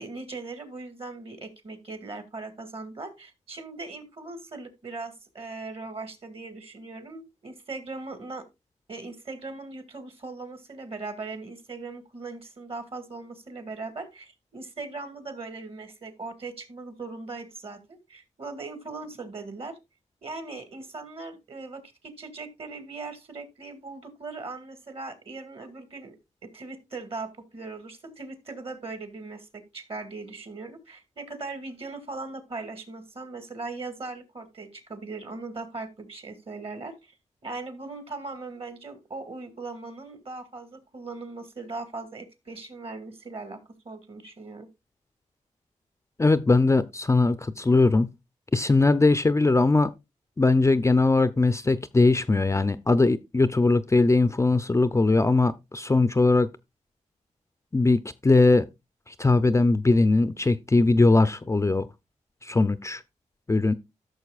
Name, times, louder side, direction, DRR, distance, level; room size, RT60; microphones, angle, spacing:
voice 1, 0.0-8.5 8.9-19.8 20.2-26.2 26.4-37.1 37.4-43.6 43.8-44.7, right 3 dB, 45° right, 2.0 m, -39 dB
voice 2, 46.2-48.1 48.5-49.9 50.4-56.5 57.7-58.7 59.1-61.9 62.4-63.0 63.5-63.7, left 3 dB, 20° left, 0.5 m, -20 dB
14.0 x 6.4 x 2.4 m
cardioid pair, 70°, 13 cm